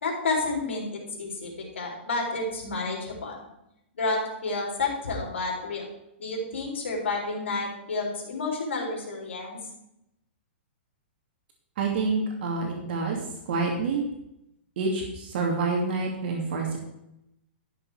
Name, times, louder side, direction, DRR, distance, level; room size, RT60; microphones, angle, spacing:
voice 1, 0.0-3.4 3.9-5.9 6.2-9.6, left 3 dB, 90° left, -1 dB, 3.9 m, -30 dB
voice 2, 11.8-13.2 13.5-14.0 14.8-16.8, right 4 dB, 55° right, 0 dB, 2.4 m, -27 dB
13.0 x 6.7 x 4.8 m, 0.83 s
hypercardioid pair, 150°, 6 cm